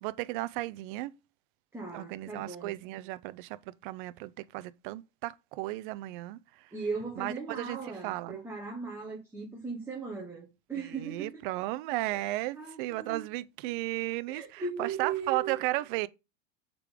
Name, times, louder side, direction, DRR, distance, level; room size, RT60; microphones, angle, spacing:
voice 1, 0.0-1.1 1.9-6.7 7.2-8.4 10.7-16.1, right 18 dB, 45° right, 0.5 m, -35 dB
voice 2, 1.7-2.8 6.7-11.4 12.1-12.2 12.5-13.2 14.3-15.6, right 5 dB, 5° right, 1.0 m, -38 dB
6.7 x 3.8 x 4.9 m
supercardioid pair, 160°, 36 cm